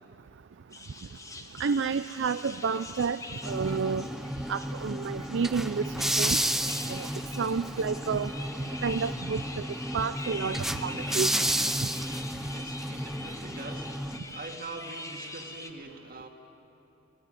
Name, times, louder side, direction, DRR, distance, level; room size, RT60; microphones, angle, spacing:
sound 1, 0.7-15.7, left 2 dB, 15° left, 1.2 m, -44 dB
voice 1, 1.6-4.1 4.5-5.8 6.2-6.4 6.9-7.1 7.4-8.3 8.8-9.4 9.9-11.4, right 5 dB, 65° right, 11 dB, 0.5 m, -30 dB
sound 2, 3.4-14.2, right 1 dB, ahead, 0.7 m, -32 dB
voice 2, 12.2-16.3, right 3 dB, 45° right, 3 dB, 2.0 m, -44 dB
24.0 x 18.0 x 9.2 m, 3.0 s
head